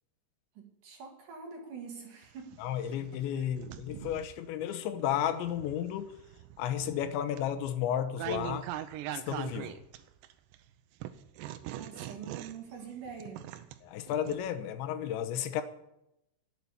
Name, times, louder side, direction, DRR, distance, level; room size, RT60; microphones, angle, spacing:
voice 1, 0.5-2.6 3.3-3.5 11.7-13.5, right 6 dB, 55° right, 2 dB, 3.0 m, -45 dB
sound 1, 2.2-4.4 5.0-10.6 11.0-14.4, right 12 dB, 85° right, 2.9 m, -42 dB
voice 2, 2.6-6.2 6.6-8.7 9.1-9.8 13.8-15.6, left 10 dB, 80° left, 9 dB, 3.3 m, -33 dB
11.5 x 8.5 x 9.7 m, 0.85 s
omnidirectional pair, 5.2 m